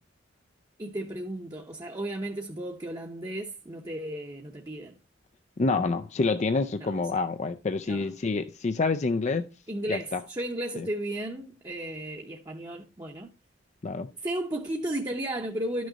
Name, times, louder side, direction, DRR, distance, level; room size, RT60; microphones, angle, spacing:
voice 1, 0.8-5.0 6.8-7.0 7.9-8.1 9.7-13.3 14.2-15.9, right 1 dB, 20° right, 0.9 m, -34 dB
voice 2, 5.6-9.5 9.9-10.2 13.8-14.1, left 3 dB, 35° left, 0.4 m, -27 dB
12.0 x 6.3 x 4.0 m
head